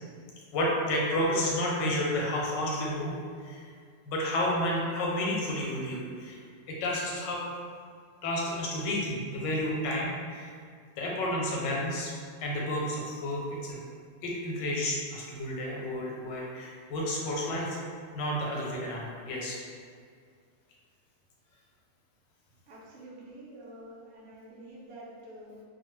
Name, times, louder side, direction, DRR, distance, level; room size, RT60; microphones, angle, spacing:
voice 1, 0.5-3.2 3.4-3.7 4.0-6.4 6.7-7.4 8.2-10.5 10.9-12.1 12.4-13.8 14.2-17.8 18.1-19.6, left 1 dB, 85° left, -3 dB, 1.3 m, -31 dB
voice 2, 22.7-25.6, right 1 dB, 75° right, -6 dB, 0.6 m, -48 dB
2.8 x 2.1 x 3.1 m, 2.1 s
omnidirectional pair, 1.9 m